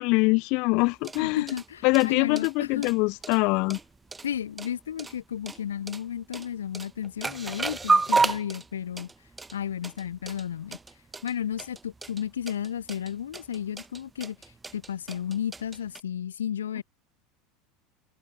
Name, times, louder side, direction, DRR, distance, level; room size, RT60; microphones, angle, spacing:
voice 1, 0.0-1.5 1.8-3.8, left 28 dB, 60° left, 0.4 m, -23 dB
sound 1, 0.8-16.0, right 3 dB, 15° right, 2.8 m, -32 dB
voice 2, 1.2-2.9 4.2-9.1 9.5-10.8 11.2-14.4 14.7-16.8, left 9 dB, 85° left, 2.6 m, -33 dB
hypercardioid pair, 85°, 0 cm